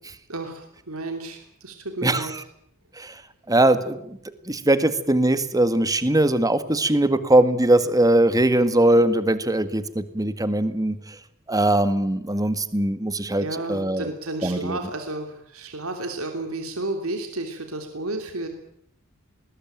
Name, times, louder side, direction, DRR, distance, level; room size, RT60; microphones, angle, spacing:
voice 1, 0.3-2.3 13.4-18.5, right 2 dB, 90° right, 5 dB, 3.1 m, -32 dB
voice 2, 3.5-4.2 4.5-11.0 11.5-14.1 14.4-14.8, right 1 dB, 15° right, 12 dB, 1.8 m, -21 dB
20.5 x 20.5 x 9.2 m, 0.71 s
head